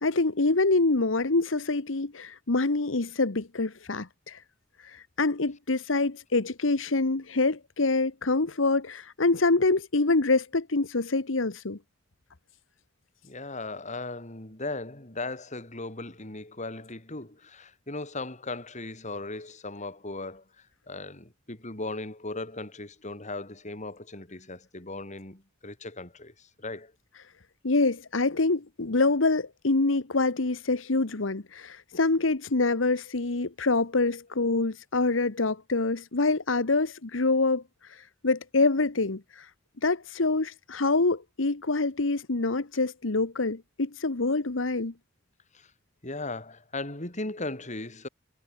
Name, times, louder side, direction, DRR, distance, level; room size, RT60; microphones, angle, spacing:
voice 1, 0.0-4.4 4.8-11.8 27.6-39.5 39.8-44.9, left 3 dB, 80° left, 1.3 m, -26 dB
voice 2, 13.2-20.4 20.9-26.9 45.5-45.7 46.0-48.1, left 2 dB, 40° left, 4.4 m, -37 dB
head